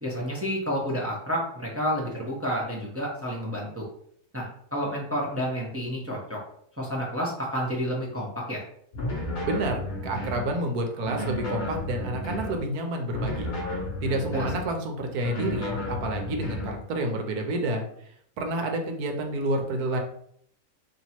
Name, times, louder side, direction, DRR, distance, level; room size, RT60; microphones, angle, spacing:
voice 1, 0.0-3.8 4.3-6.4 6.8-8.6 14.3-14.5, equal, 15° right, -3 dB, 0.4 m, -30 dB
sound 1, 8.9-10.5 11.0-12.6 13.1-14.7 15.2-16.8, left 1 dB, 40° left, 0.7 m, -32 dB
voice 2, 9.4-13.5 14.0-17.9 18.4-20.0, right 1 dB, 75° right, 3 dB, 1.2 m, -29 dB
3.0 x 2.9 x 4.2 m, 0.66 s
omnidirectional pair, 1.7 m